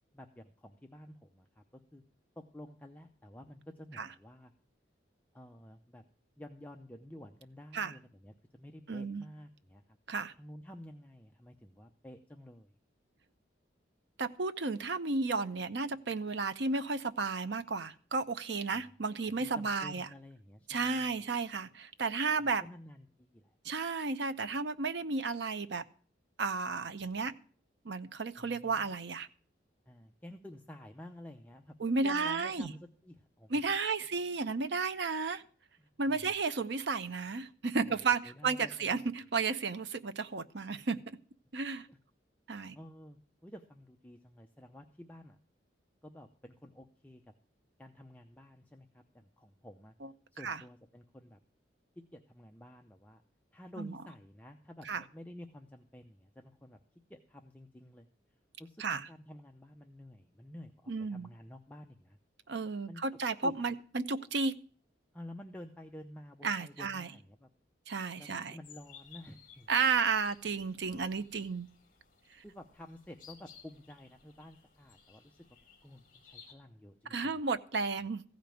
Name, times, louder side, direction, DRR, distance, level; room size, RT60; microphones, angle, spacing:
voice 1, 0.0-2.0 2.4-4.5 5.3-6.0 6.4-10.0 10.3-12.7 18.7-18.9 19.4-21.2 22.4-23.5 28.4-28.9 29.9-33.6 35.8-36.4 37.8-38.0 38.2-39.1 41.9-42.0 42.7-45.4 46.0-47.2 47.8-49.9 50.3-51.4 52.1-53.2 53.5-56.8 57.1-58.1 58.6-62.2 62.9-63.0 63.4-63.5 65.1-67.5 68.2-69.7 72.4-75.4 75.8-77.4, left 1 dB, 10° left, 0.6 m, -51 dB
voice 2, 8.9-9.2 10.1-10.3 14.2-20.1 20.7-22.6 23.6-25.8 26.4-27.3 27.8-29.3 31.8-32.7 33.5-35.4 36.0-41.2 41.5-41.9 42.5-42.8 50.0-50.1 50.4-50.6 53.8-53.9 54.9-55.0 58.8-59.1 60.9-61.3 62.5-64.5 66.4-67.1 67.9-68.6 69.7-71.7 77.1-78.2, right 4 dB, 70° right, 0.7 m, -33 dB
sound 1, 68.6-76.5, left 7 dB, 45° left, 2.5 m, -58 dB
15.0 x 5.2 x 9.0 m
head